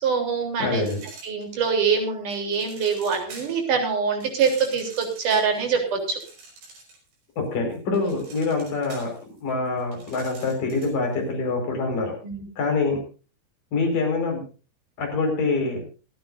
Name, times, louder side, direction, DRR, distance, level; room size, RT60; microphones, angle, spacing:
voice 1, 0.0-0.8 1.2-6.2 8.0-8.1 12.2-12.5, right 5 dB, 50° right, 3 dB, 4.7 m, -24 dB
voice 2, 0.6-1.0 7.4-9.1 9.4-12.1 12.6-13.0 13.7-14.4 15.0-15.8, left 3 dB, 50° left, 2 dB, 6.5 m, -25 dB
sound 1, 0.8-1.8 2.3-3.7 4.2-7.1 7.5-11.1, right 3 dB, 75° right, 7.7 m, -46 dB
28.0 x 9.3 x 2.6 m, 0.35 s
omnidirectional pair, 5.1 m